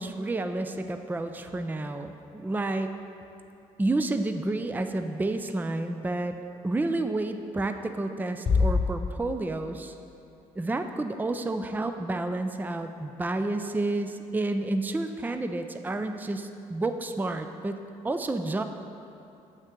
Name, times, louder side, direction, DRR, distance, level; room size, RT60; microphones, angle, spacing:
voice 1, 0.0-2.9 3.8-6.4 6.6-9.9 10.6-17.8 18.0-18.6, right 2 dB, 10° right, 7 dB, 0.4 m, -30 dB
sound 1, 8.5-9.9, left 4 dB, 35° left, 0.6 m, -26 dB
7.7 x 6.3 x 3.7 m, 2.7 s
supercardioid pair, 55°, 16 cm